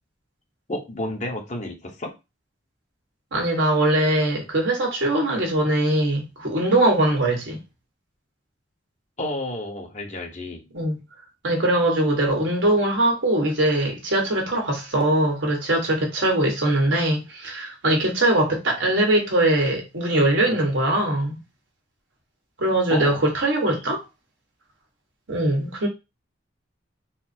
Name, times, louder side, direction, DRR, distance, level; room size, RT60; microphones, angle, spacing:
voice 1, 0.7-2.1 9.2-10.7 22.9-23.2, left 1 dB, 40° left, 1.0 m, -31 dB
voice 2, 3.3-7.6 10.7-11.0 11.4-21.4 22.6-24.0 25.3-25.9, right 1 dB, 80° right, 1.4 m, -21 dB
4.1 x 2.0 x 4.2 m
head